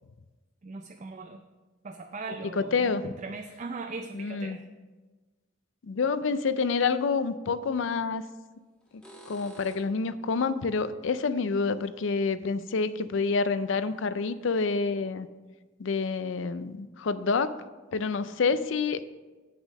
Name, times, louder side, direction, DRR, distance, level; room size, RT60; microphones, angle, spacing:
voice 1, 0.6-1.4 1.8-4.6, right 3 dB, 35° right, 5 dB, 0.4 m, -39 dB
voice 2, 2.5-3.1 4.1-4.6 5.8-8.2 8.9-15.3 15.8-17.5 17.9-19.0, left 4 dB, 65° left, 14 dB, 0.4 m, -28 dB
sound 1, 7.8-8.0 8.8-10.1 12.7-12.8 13.6-13.7 14.1-14.2 14.5-14.6, right 1 dB, 5° left, 1.3 m, -50 dB
8.3 x 6.2 x 5.3 m, 1.2 s
head